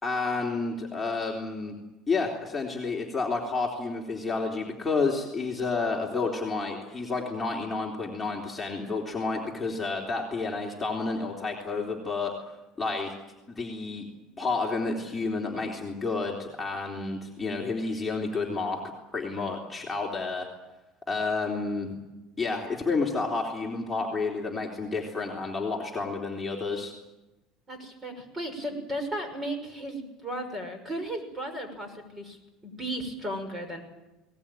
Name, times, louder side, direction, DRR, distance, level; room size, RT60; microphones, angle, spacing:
voice 1, 0.0-1.8 2.1-12.3 12.8-13.1 13.6-14.0 14.4-18.8 19.1-20.5 21.1-22.0 22.4-26.9, left 3 dB, 10° left, -2 dB, 3.5 m, -30 dB
voice 2, 27.7-33.8, right 1 dB, 20° right, 7 dB, 6.0 m, -35 dB
21.5 x 19.0 x 9.1 m, 1.0 s
supercardioid pair, 125°, 0 cm